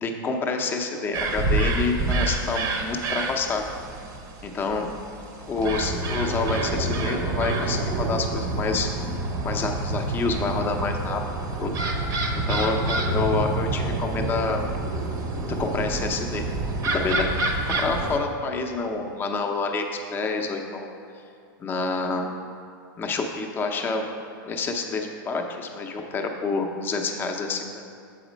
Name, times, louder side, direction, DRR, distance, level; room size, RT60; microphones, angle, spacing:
voice 1, 0.0-3.7 4.4-4.9 5.5-8.9 9.4-11.2 11.6-11.7 12.3-14.6 15.5-16.4 16.9-20.9 21.6-22.3 23.0-24.0 24.4-28.0, left 4 dB, 20° left, 3 dB, 0.6 m, -28 dB
sound 1, 1.1-18.2, right 2 dB, 25° right, 0.6 m, -27 dB
7.2 x 4.2 x 5.0 m, 2.4 s
supercardioid pair, 140°, 11 cm